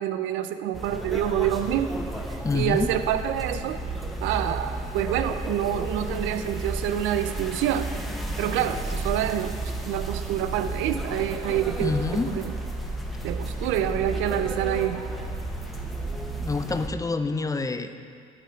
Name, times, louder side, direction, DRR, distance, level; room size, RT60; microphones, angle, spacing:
voice 1, 0.0-2.0 2.3-3.8 4.2-7.9 8.4-9.5 9.8-12.5 13.2-15.0, right 11 dB, 80° right, 10 dB, 0.5 m, -27 dB
sound 1, 0.7-16.9, right 2 dB, ahead, 1.0 m, -32 dB
voice 2, 2.4-2.9 11.8-12.3 16.4-18.0, left 3 dB, 15° left, 9 dB, 0.5 m, -27 dB
13.0 x 5.0 x 4.5 m, 2.2 s
supercardioid pair, 75°, 20 cm